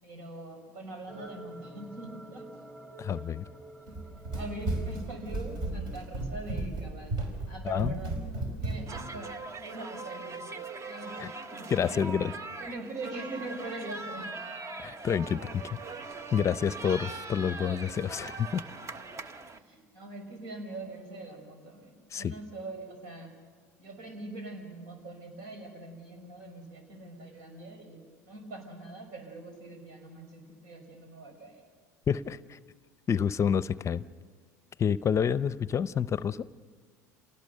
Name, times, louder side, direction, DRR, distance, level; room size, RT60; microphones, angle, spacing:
voice 1, 0.0-2.5 4.1-7.1 7.5-8.2 8.6-10.5 10.8-12.0 12.6-14.4 19.5-23.3 23.8-31.6, right 2 dB, 75° right, 5 dB, 5.6 m, -43 dB
sound 1, 1.1-6.1, right 1 dB, 15° right, 3.0 m, -49 dB
voice 2, 3.0-3.4 7.6-7.9 11.2-11.3 11.7-12.3 14.8-15.8 16.3-18.6 22.1-22.3 32.1-32.6 33.1-34.0 34.8-36.5, left 7 dB, 35° left, 17 dB, 0.6 m, -28 dB
Run, 3.9-9.1, right 2 dB, 55° right, 4.9 m, -34 dB
sound 2, 8.9-19.6, right 3 dB, 35° right, 1.2 m, -41 dB
28.0 x 18.5 x 6.7 m, 1.5 s
hypercardioid pair, 80°, 9 cm